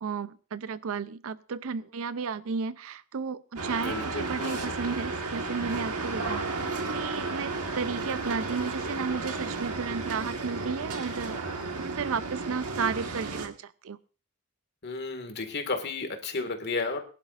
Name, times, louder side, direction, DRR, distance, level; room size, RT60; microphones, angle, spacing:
voice 1, 0.0-6.5 6.9-11.4 11.8-14.0, right 5 dB, 65° right, 15 dB, 0.5 m, -33 dB
sound 1, 3.6-13.5, right 3 dB, 90° right, 1.6 m, -33 dB
voice 2, 3.8-4.7 14.8-17.0, left 3 dB, 50° left, 6 dB, 2.0 m, -33 dB
22.0 x 11.5 x 2.5 m, 0.36 s
head